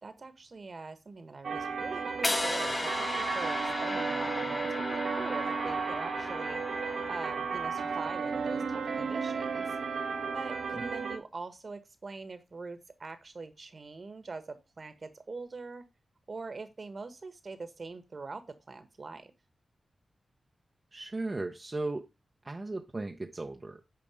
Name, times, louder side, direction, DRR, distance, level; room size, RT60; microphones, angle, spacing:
voice 1, 0.0-9.8 10.3-15.8 16.3-19.3, right 3 dB, 50° right, 10 dB, 1.5 m, -43 dB
sound 1, 1.4-11.2, right 5 dB, 85° right, 1.5 m, -34 dB
sound 2, 2.2-8.4, left 2 dB, 25° left, 0.4 m, -36 dB
voice 2, 20.9-22.1 22.4-23.8, right 2 dB, 30° right, 4 dB, 0.8 m, -36 dB
8.8 x 5.0 x 5.0 m, 0.26 s
wide cardioid pair, 85°, 0 cm